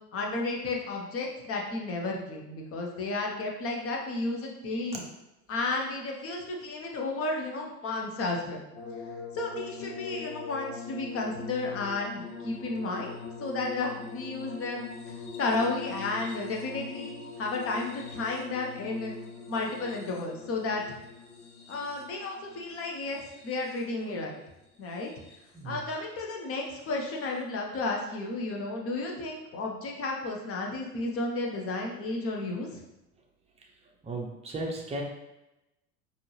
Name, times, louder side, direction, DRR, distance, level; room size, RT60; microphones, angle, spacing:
voice 1, 0.1-5.0 5.5-8.6 9.3-14.9 15.4-19.1 19.5-21.0 21.7-24.4 24.8-25.1 25.6-32.8, left 2 dB, 30° left, 0 dB, 0.9 m, -33 dB
sound 1, 8.7-24.0 24.9-25.6 27.0-27.1, left 5 dB, 65° left, 0.9 m, -42 dB
voice 2, 34.0-35.0, right 2 dB, 15° right, 0 dB, 0.7 m, -35 dB
4.4 x 2.8 x 3.1 m, 0.94 s
figure-of-eight pair, 85°, 48 cm